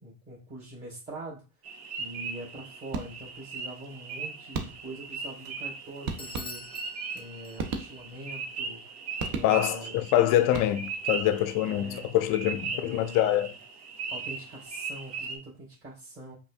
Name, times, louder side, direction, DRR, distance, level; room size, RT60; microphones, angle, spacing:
voice 1, 0.0-1.4 2.0-6.6 7.1-8.9 9.3-10.0 11.6-12.2 12.7-13.5 14.1-16.4, right 1 dB, 25° right, 2.0 m, -43 dB
sound 1, 1.6-15.4, right 5 dB, 75° right, 0.9 m, -39 dB
sound 2, 2.9-3.5 4.5-5.1 6.1-6.9 7.6-8.3 9.2-9.9 10.4-11.1, right 4 dB, 50° right, 0.8 m, -36 dB
Bell / Doorbell, 6.2-8.0, left 3 dB, 10° left, 0.8 m, -45 dB
voice 2, 9.4-13.5, left 12 dB, 45° left, 0.5 m, -25 dB
5.1 x 2.6 x 2.4 m
hypercardioid pair, 70°, 46 cm